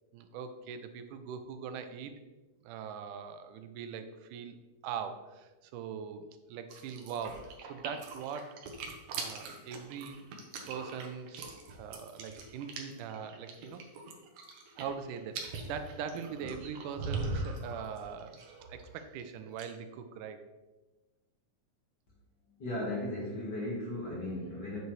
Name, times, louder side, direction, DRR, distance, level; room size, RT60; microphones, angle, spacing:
voice 1, 0.1-2.1 2.6-4.6 4.8-8.6 9.2-10.3 10.7-13.8 14.8-18.4 18.7-20.4, right 7 dB, 85° right, 9 dB, 2.2 m, -41 dB
sound 1, 6.7-19.2 19.5-19.6, right 3 dB, 70° right, 2.2 m, -41 dB
voice 2, 22.5-24.8, left 1 dB, 40° left, -4 dB, 1.9 m, -36 dB
8.0 x 7.1 x 3.2 m, 1.1 s
omnidirectional pair, 3.5 m